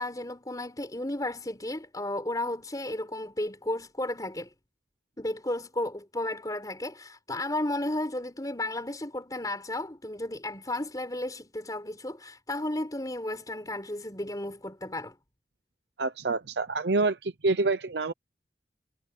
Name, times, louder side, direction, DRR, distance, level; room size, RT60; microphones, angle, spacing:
voice 1, 0.0-4.5 5.2-15.1, left 1 dB, 20° left, 5.1 m, -33 dB
voice 2, 16.0-18.1, right 3 dB, 70° right, 0.8 m, -27 dB
head